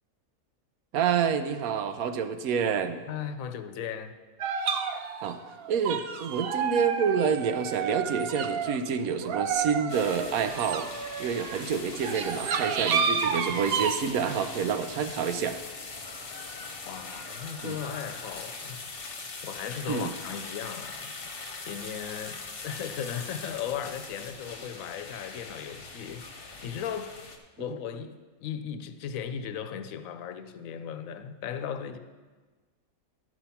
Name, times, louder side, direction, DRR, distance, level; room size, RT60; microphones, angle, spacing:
voice 1, 0.9-3.0 5.2-5.4 5.7-10.9 11.2-15.6 17.6-17.8 19.9-20.1, right 7 dB, 80° right, 8 dB, 1.1 m, -28 dB
voice 2, 3.1-4.1 16.8-18.9 19.1-21.1 21.6-27.1 27.6-32.0, left 8 dB, 75° left, 9 dB, 1.0 m, -37 dB
sound 1, 4.4-8.8 9.2-14.0, right 6 dB, 60° right, 0.6 m, -30 dB
sound 2, 9.9-27.4, left 3 dB, 45° left, 1.0 m, -41 dB
12.0 x 4.9 x 5.7 m, 1.4 s
omnidirectional pair, 1.5 m